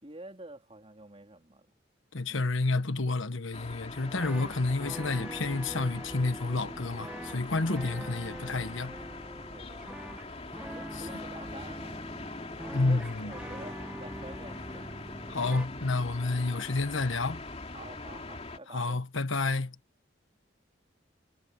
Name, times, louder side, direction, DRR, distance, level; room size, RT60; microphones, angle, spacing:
voice 1, 0.0-1.7 2.3-2.6 7.6-7.9 9.5-10.2 10.7-12.1 12.8-14.9 15.4-15.9 17.7-19.0, right 2 dB, 30° right, 3.8 m, -48 dB
voice 2, 2.1-9.0 12.7-13.3 15.3-17.4 18.7-19.7, left 3 dB, 75° left, 1.4 m, -30 dB
sound 1, 3.5-18.6, left 2 dB, 30° left, 2.9 m, -42 dB
sound 2, 4.0-15.7, equal, 5° right, 1.5 m, -44 dB
head